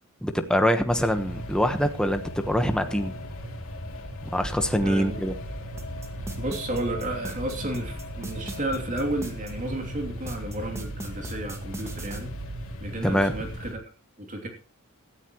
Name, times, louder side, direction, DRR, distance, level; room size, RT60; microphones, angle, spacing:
voice 1, 0.2-3.1 4.3-5.3 13.0-13.3, equal, 5° left, 7 dB, 1.2 m, -24 dB
sound 1, 0.9-13.7, equal, 65° left, 3.1 m, -38 dB
sound 2, 4.4-12.6, right 4 dB, 80° right, 0.7 m, -43 dB
voice 2, 4.8-5.2 6.4-12.3 12.8-13.8 14.2-14.5, right 1 dB, 35° right, 3 dB, 2.9 m, -32 dB
sound 3, 5.8-9.5 10.3-12.2, right 1 dB, 15° right, 1.9 m, -39 dB
17.0 x 13.0 x 3.1 m, 0.34 s
head